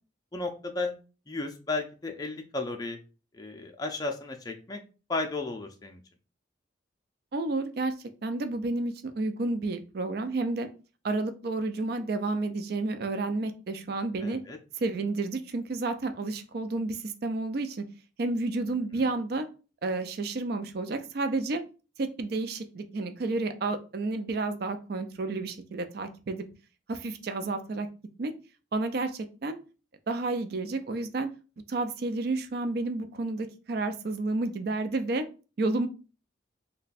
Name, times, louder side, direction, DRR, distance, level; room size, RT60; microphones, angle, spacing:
voice 1, 0.3-0.9 1.3-3.0 3.3-4.8 5.1-6.0 14.2-14.6 18.9-19.1, left 3 dB, 20° left, 3 dB, 0.4 m, -34 dB
voice 2, 7.3-7.9 8.2-10.7 11.0-14.4 14.8-17.8 18.2-19.5 19.8-21.6 22.0-26.5 26.9-27.9 28.2-28.3 28.7-29.6 30.1-31.3 31.7-35.2 35.6-35.9, right 3 dB, 55° right, 8 dB, 0.4 m, -30 dB
3.2 x 2.2 x 4.0 m, 0.34 s
head